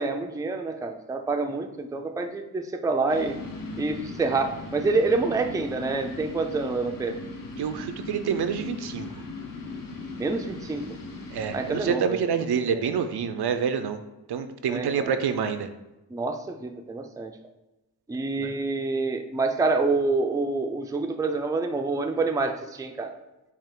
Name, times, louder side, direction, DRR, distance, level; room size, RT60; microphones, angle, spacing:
voice 1, 0.0-3.4 3.8-7.2 10.2-10.9 11.5-12.3 12.5-13.0 14.7-15.1 16.1-17.3 18.1-23.1, right 3 dB, 10° right, 5 dB, 0.3 m, -27 dB
sound 1, 3.1-11.9, left 3 dB, 55° left, 0.8 m, -38 dB
voice 2, 7.6-9.1 11.3-14.0 14.3-15.7 18.4-18.5, right 7 dB, 70° right, 9 dB, 0.5 m, -27 dB
5.5 x 2.4 x 3.6 m, 0.99 s
cardioid pair, 60°, 40 cm